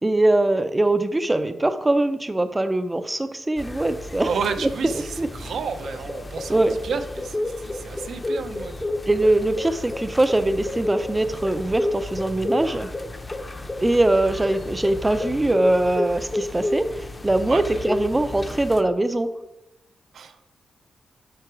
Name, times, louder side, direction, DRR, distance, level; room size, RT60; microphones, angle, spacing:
voice 1, 0.0-4.3 4.6-5.3 6.5-6.8 9.1-12.9 13.8-19.3, right 2 dB, 15° right, 10 dB, 0.5 m, -22 dB
sound 1, 3.6-18.8, left 2 dB, 20° left, 0.7 m, -31 dB
voice 2, 4.2-8.7 17.5-17.6 20.1-20.4, right 5 dB, 75° right, 9 dB, 0.6 m, -31 dB
7.8 x 5.8 x 4.6 m, 0.89 s
cardioid pair, 110°, 0 cm